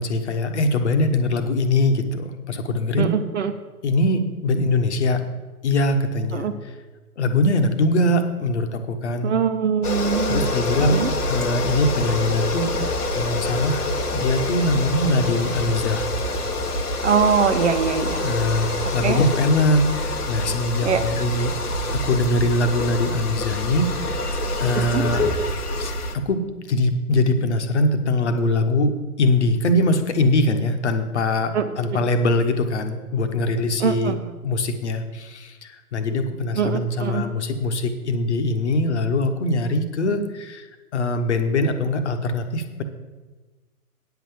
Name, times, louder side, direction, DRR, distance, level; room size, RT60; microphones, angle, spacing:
voice 1, 0.0-3.1 3.8-5.2 5.6-6.7 7.2-9.4 10.3-16.1 18.2-21.5 22.0-24.3 24.6-25.3 26.2-34.1 34.4-40.7 40.9-42.8, left 2 dB, 50° left, 7 dB, 1.3 m, -22 dB
voice 2, 3.0-3.5 6.3-6.5 9.2-10.5 10.8-11.1 17.0-18.2 19.0-19.2 20.8-21.0 24.9-25.0 31.5-31.7 33.8-34.2 36.5-37.2, right 6 dB, 50° right, 9 dB, 1.0 m, -22 dB
sound 1, 9.8-26.2, left 1 dB, 80° left, 1.2 m, -26 dB
9.6 x 6.0 x 7.5 m, 1.3 s
figure-of-eight pair, 120°, 45 cm